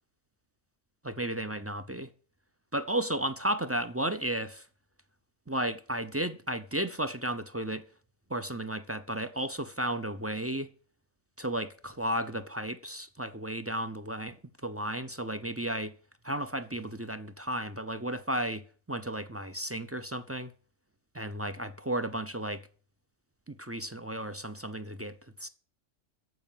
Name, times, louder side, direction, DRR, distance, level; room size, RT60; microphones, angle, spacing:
voice 1, 1.2-2.1 2.7-4.7 5.5-7.8 8.3-10.7 11.4-14.4 14.6-15.9 16.2-20.5 21.1-22.7 23.5-25.5, right 1 dB, 20° right, 0.4 m, -33 dB
14.0 x 5.4 x 9.0 m
omnidirectional pair, 1.4 m